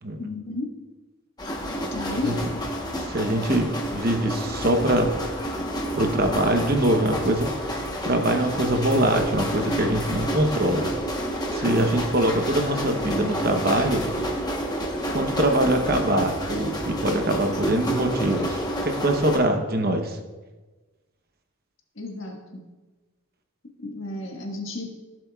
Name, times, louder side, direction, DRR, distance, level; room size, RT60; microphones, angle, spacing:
voice 1, 0.2-0.7 1.9-2.6 21.9-22.6 23.8-24.9, left 2 dB, 60° left, 1 dB, 1.5 m, -32 dB
sound 1, 1.4-19.4, equal, 20° left, 1.0 m, -29 dB
voice 2, 2.9-5.1 5.9-10.9 11.5-14.0 15.1-20.2, right 1 dB, 45° right, 5 dB, 0.8 m, -23 dB
15.5 x 7.5 x 2.3 m, 1.2 s
head